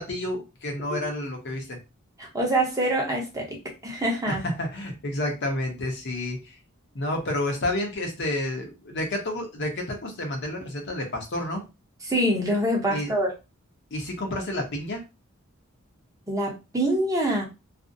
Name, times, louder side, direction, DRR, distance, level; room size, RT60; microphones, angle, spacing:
voice 1, 0.0-1.8 4.3-6.6 6.9-11.6 12.9-13.1 13.9-15.0, left 1 dB, 55° left, 3 dB, 0.7 m, -30 dB
voice 2, 2.2-3.6 3.8-4.4 12.1-13.3 16.3-17.4, right 1 dB, 15° right, -1 dB, 0.7 m, -25 dB
2.5 x 2.0 x 2.5 m, 0.26 s
head